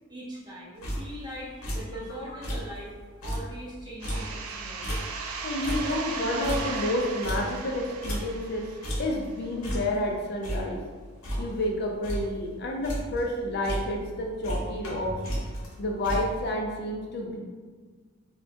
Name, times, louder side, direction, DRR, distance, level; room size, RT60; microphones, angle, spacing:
voice 1, 0.1-2.9 3.2-4.9, equal, 20° right, -6 dB, 0.6 m, -41 dB
sound 1, 0.8-1.3 1.6-2.0 2.3-2.8 3.1-5.4 5.6-8.6 8.8-9.3 9.6-10.1 10.4-11.7 12.0-12.4 12.7-13.3 13.6-14.2 14.4-16.5, equal, 75° left, 0.8 m, -34 dB
sound 2, 4.0-9.5, right 5 dB, 80° right, 0.3 m, -37 dB
voice 2, 5.4-8.7 9.0-10.8 11.4-15.2 15.8-17.4, left 1 dB, 50° left, 0 dB, 0.4 m, -29 dB
3.1 x 2.1 x 2.8 m, 1.5 s
head